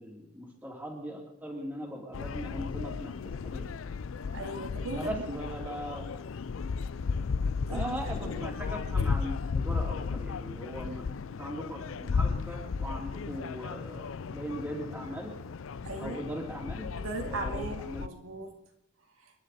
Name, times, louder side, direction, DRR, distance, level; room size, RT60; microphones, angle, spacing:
voice 1, 0.0-3.8 5.0-6.1 7.7-15.3 16.0-16.9 17.3-18.1, equal, 10° right, -1 dB, 2.9 m, -39 dB
sound 1, 2.1-18.1, left 5 dB, 70° left, 0.4 m, -34 dB
voice 2, 4.3-5.4 7.7-8.0 15.8-16.2 17.0-18.5, right 2 dB, 90° right, 2 dB, 2.3 m, -38 dB
28.0 x 10.5 x 4.2 m, 0.84 s
head